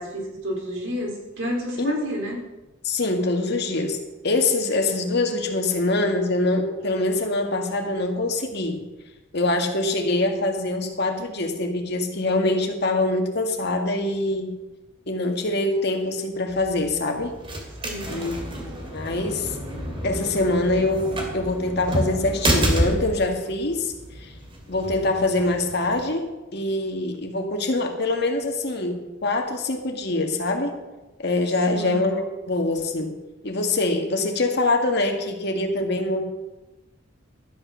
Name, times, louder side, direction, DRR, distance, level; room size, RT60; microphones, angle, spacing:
voice 1, 0.0-2.4 17.8-18.3 31.7-32.1, equal, 85° right, -1 dB, 3.7 m, -30 dB
voice 2, 2.8-4.0 4.2-8.8 9.3-14.5 15.1-17.4 18.1-19.6 20.0-24.3 24.7-30.8 31.2-33.1 33.4-36.2, left 2 dB, 60° left, 3 dB, 1.8 m, -24 dB
sound 1, 16.5-26.1, equal, 30° right, 2.4 m, -30 dB
12.5 x 8.8 x 6.2 m, 1.1 s
head